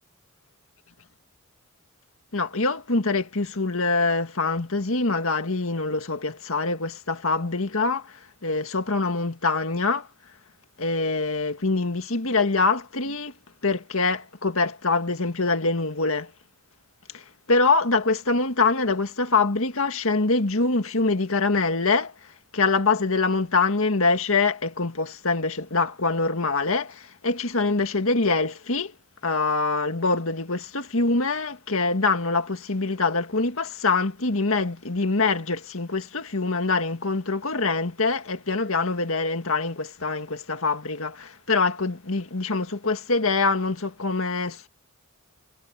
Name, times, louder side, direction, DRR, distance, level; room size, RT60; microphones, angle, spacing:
voice 1, 2.3-10.1 10.8-13.3 13.6-16.3 17.1-28.9 29.2-44.7, left 3 dB, 70° left, 1.9 m, -24 dB
head